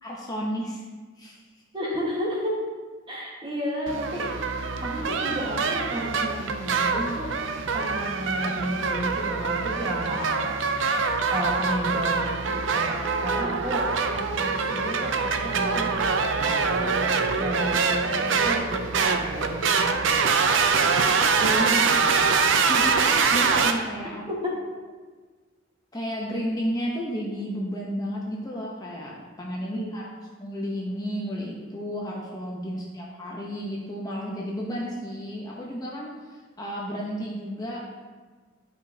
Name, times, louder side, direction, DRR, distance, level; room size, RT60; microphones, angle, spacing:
voice 1, 0.0-0.8 1.2-1.4 22.7-23.0 23.3-24.2 25.9-30.1 30.4-37.8, equal, 20° left, -3 dB, 0.8 m, -32 dB
voice 2, 1.7-2.6 3.1-4.3 4.8-7.3 7.7-10.6 11.3-13.9 14.1-20.5 21.4-21.9 24.4-24.5 29.7-29.9, equal, 25° right, -4 dB, 1.5 m, -32 dB
sound 1, 3.9-23.7, right 5 dB, 70° right, 0.5 m, -24 dB
11.0 x 5.1 x 2.8 m, 1.4 s
head